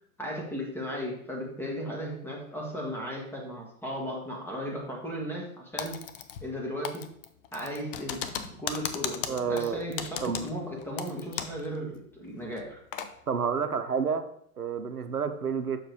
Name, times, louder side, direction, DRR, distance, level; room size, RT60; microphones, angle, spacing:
voice 1, 0.2-6.0 6.4-7.1 7.5-12.8, equal, 5° left, -1 dB, 1.4 m, -36 dB
Typing, 5.8-6.6 6.8-11.7 11.9-12.0 12.5-13.1, left 9 dB, 40° left, 0.6 m, -36 dB
voice 2, 9.2-9.8 10.2-10.5 13.3-14.2 14.6-15.8, right 6 dB, 90° right, 9 dB, 0.7 m, -29 dB
6.6 x 4.6 x 4.6 m, 0.66 s
figure-of-eight pair, 100°, 44 cm